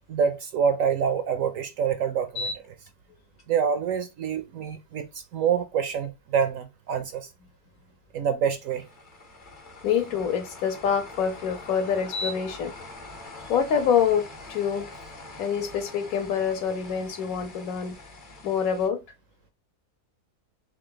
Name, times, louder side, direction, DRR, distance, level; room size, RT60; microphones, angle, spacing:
voice 1, 0.1-2.8 3.5-7.3 8.1-8.9, right 7 dB, 70° right, 0.8 m, -26 dB
sound 1, 2.3-2.9 3.4-3.5 8.6-18.9, left 2 dB, 40° left, 0.8 m, -41 dB
voice 2, 9.8-12.7 13.5-14.9 15.4-17.9 18.4-19.0, left 7 dB, 65° left, 1.1 m, -26 dB
3.5 x 3.3 x 3.8 m
omnidirectional pair, 1.7 m